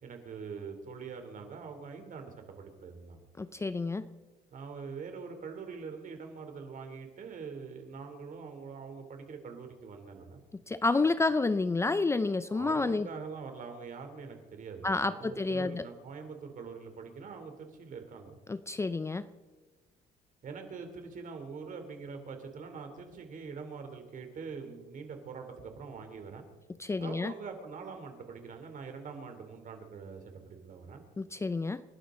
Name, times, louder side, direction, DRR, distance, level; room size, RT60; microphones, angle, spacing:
voice 1, 0.0-3.2 4.5-10.4 12.5-18.4 20.4-26.5 27.0-31.0, right 5 dB, 50° right, 5 dB, 3.3 m, -44 dB
voice 2, 3.4-4.1 10.5-13.1 14.8-15.8 18.5-19.3 26.8-27.3 31.2-31.8, left 3 dB, 15° left, 13 dB, 0.5 m, -29 dB
29.5 x 12.5 x 3.9 m, 1.3 s
cardioid pair, 110°, 17 cm